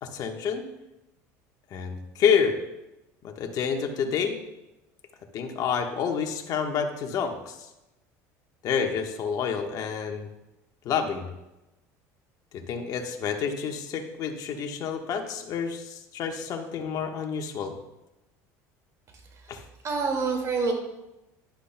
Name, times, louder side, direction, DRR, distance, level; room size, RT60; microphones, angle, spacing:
voice 1, 0.0-0.6 1.7-2.6 3.2-4.4 5.3-7.7 8.6-10.3 10.8-11.3 12.5-17.7 19.5-19.6, left 6 dB, 50° left, 4 dB, 1.3 m, -28 dB
voice 2, 19.8-20.7, right 4 dB, 40° right, 3 dB, 2.2 m, -27 dB
11.5 x 10.5 x 2.3 m, 0.97 s
supercardioid pair, 100°, 8 cm